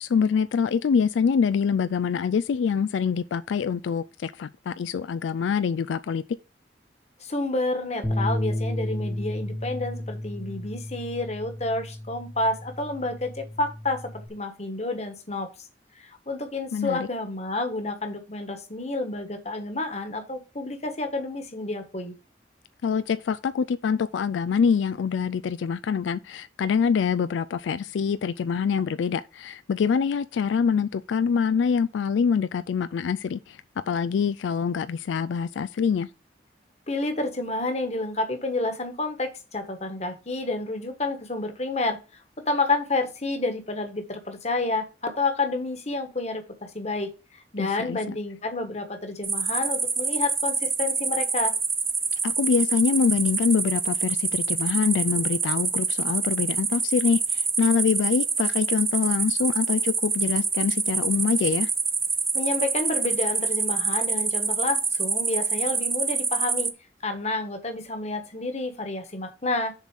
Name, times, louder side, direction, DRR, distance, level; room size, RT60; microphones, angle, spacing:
voice 1, 0.0-6.2 16.7-17.1 22.8-33.6 33.9-36.1 47.6-48.2 52.2-61.7, left 6 dB, 85° left, 0.3 m, -25 dB
voice 2, 7.2-15.5 16.3-22.1 36.9-42.0 42.5-47.1 47.5-51.5 62.3-66.7 67.0-69.7, left 2 dB, 35° left, 1.4 m, -29 dB
Bass guitar, 8.0-14.3, left 1 dB, 10° left, 1.1 m, -32 dB
sound 1, 49.2-66.7, right 5 dB, 15° right, 0.6 m, -26 dB
7.0 x 4.1 x 6.2 m
head